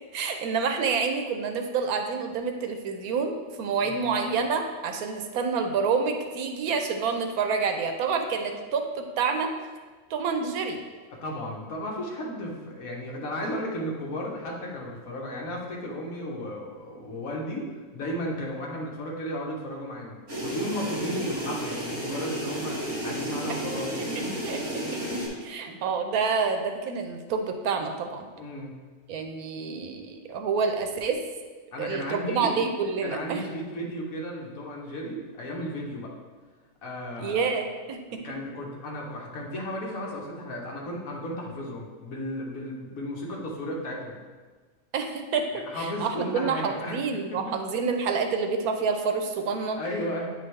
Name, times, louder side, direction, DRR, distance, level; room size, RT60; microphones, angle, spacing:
voice 1, 0.1-9.5 10.1-10.8 23.5-23.6 24.4-25.2 25.5-28.3 29.1-31.2 31.8-33.4 37.2-38.2 44.9-45.5 45.7-49.8, right 5 dB, 85° right, 5 dB, 1.1 m, -28 dB
voice 2, 11.1-24.5 25.0-25.2 25.7-25.8 28.4-28.8 31.7-32.6 33.0-36.1 36.8-37.6 38.2-44.2 45.5-47.6 49.8-50.3, equal, 70° left, -2 dB, 1.5 m, -34 dB
sound 1, 20.3-25.3, right 1 dB, 55° right, 1.7 m, -32 dB
8.8 x 3.9 x 3.3 m, 1.4 s
omnidirectional pair, 1.5 m